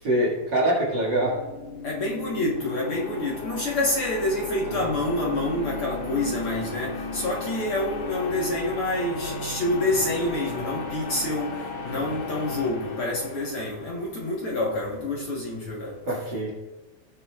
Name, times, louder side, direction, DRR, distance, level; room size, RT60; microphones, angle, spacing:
voice 1, 0.0-1.4 4.7-4.9 16.1-16.5, right 1 dB, 40° right, -3 dB, 2.4 m, -24 dB
sound 1, 1.1-13.9, left 3 dB, 85° left, 2.6 m, -35 dB
voice 2, 1.8-16.0, left 1 dB, 55° left, -3 dB, 1.9 m, -27 dB
17.5 x 6.8 x 2.4 m, 1.1 s
omnidirectional pair, 3.4 m